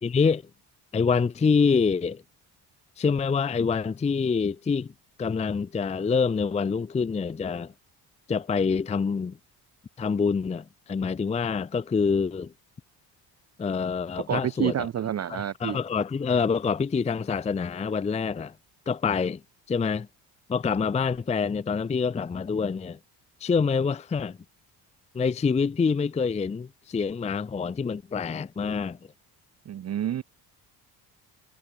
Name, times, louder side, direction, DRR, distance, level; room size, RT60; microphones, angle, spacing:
voice 1, 0.0-0.4 0.9-2.2 3.0-4.9 5.2-7.7 8.3-9.4 10.0-12.5 13.6-14.9 15.3-18.5 18.9-19.4 19.7-20.1 20.5-23.0 23.4-24.4 25.1-29.0, left 5 dB, 15° left, 0.5 m, -26 dB
voice 2, 14.3-15.8 29.7-30.2, right 10 dB, 40° right, 0.7 m, -28 dB
supercardioid pair, 75°, 41 cm